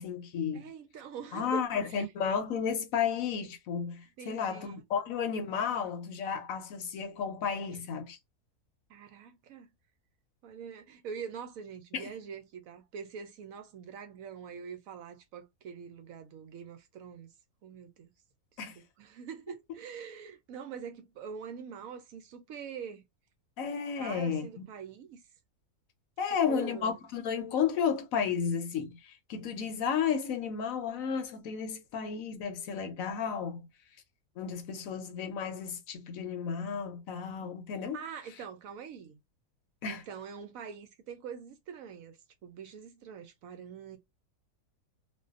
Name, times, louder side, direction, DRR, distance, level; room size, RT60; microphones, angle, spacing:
voice 1, 0.0-0.6 1.3-8.2 11.9-12.1 18.6-18.8 23.6-24.7 26.2-33.7 34.4-38.0 39.8-40.0, left 7 dB, 70° left, 1.0 m, -33 dB
voice 2, 0.5-2.1 4.2-4.8 7.7-7.8 8.9-9.7 10.4-17.3 17.6-18.1 18.6-18.7 19.0-23.0 24.0-25.2 26.5-27.0 37.9-39.2 39.8-44.0, right 7 dB, 70° right, 0.9 m, -44 dB
2.5 x 2.2 x 2.4 m
omnidirectional pair, 1.6 m